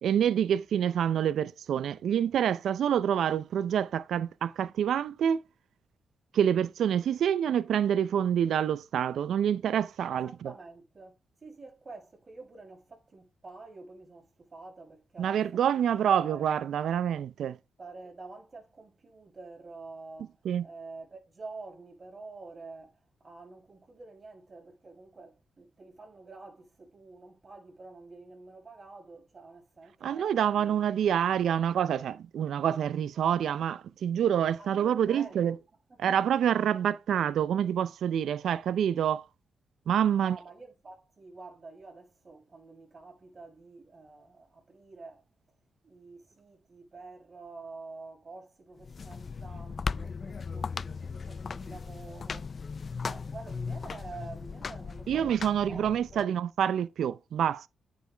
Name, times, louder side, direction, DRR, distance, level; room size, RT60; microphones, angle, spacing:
voice 1, 0.0-5.4 6.3-10.3 15.2-17.6 20.5-20.6 30.0-35.6 36.0-39.3 39.9-40.4 55.1-57.7, right 9 dB, 80° right, 0.5 m, -27 dB
voice 2, 10.1-15.8 16.1-16.5 17.8-31.2 31.5-31.9 34.6-35.6 35.9-36.0 40.2-45.2 45.8-52.6 53.0-56.3, right 3 dB, 40° right, 6.4 m, -48 dB
sound 1, 48.8-56.2, left 5 dB, 50° left, 0.4 m, -37 dB
9.5 x 6.0 x 3.4 m
cardioid pair, 65°, 0 cm